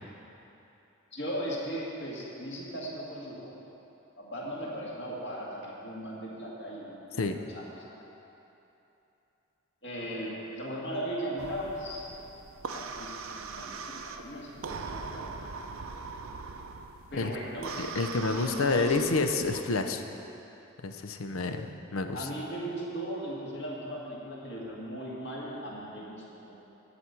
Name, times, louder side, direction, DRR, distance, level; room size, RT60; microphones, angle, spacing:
voice 1, 1.1-3.5 4.2-8.1 9.8-12.2 12.7-13.8 14.2-15.4 17.1-17.7 18.3-19.2 22.1-26.6, equal, 55° left, -5 dB, 2.1 m, -38 dB
sound 1, 11.4-19.6, right 4 dB, 85° right, 0.6 m, -41 dB
voice 2, 17.8-20.0 20.8-22.3, left 3 dB, 85° left, 7 dB, 0.6 m, -29 dB
12.0 x 4.3 x 8.2 m, 3.0 s
head